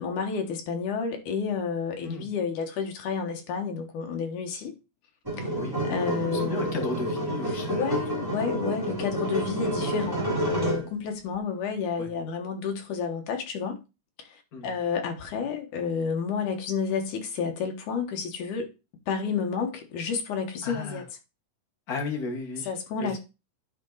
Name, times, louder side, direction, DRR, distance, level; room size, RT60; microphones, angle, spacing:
voice 1, 0.0-4.7 5.4-5.5 5.8-7.1 7.7-13.8 14.3-14.4 14.6-18.7 19.1-21.0 22.7-23.2, left 6 dB, 75° left, 2.7 m, -30 dB
sound 1, 5.2-10.9, right 1 dB, 10° right, 2.2 m, -29 dB
voice 2, 6.3-8.2 12.0-12.1 14.5-14.8 20.6-21.0 21.9-22.7 23.0-23.2, left 3 dB, 40° left, 1.4 m, -34 dB
10.5 x 3.9 x 3.9 m
omnidirectional pair, 3.6 m